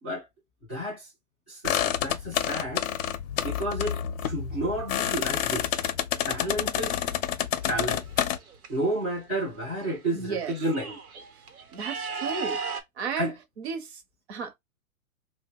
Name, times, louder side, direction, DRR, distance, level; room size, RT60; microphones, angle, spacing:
voice 1, 0.7-1.1 1.5-2.8 3.4-5.7 6.3-7.0 7.7-8.0 8.7-11.0 13.2-13.3, right 1 dB, 10° right, 0.3 m, -31 dB
sound 1, 1.6-8.4, left 10 dB, 65° left, 0.5 m, -29 dB
sound 2, 7.6-8.7 9.8-9.9 10.2-12.8, right 5 dB, 75° right, 0.9 m, -36 dB
voice 2, 10.1-10.6 11.7-12.6 13.0-14.0 14.3-14.5, right 6 dB, 50° right, 0.7 m, -33 dB
2.7 x 2.1 x 3.4 m
hypercardioid pair, 140°, 44 cm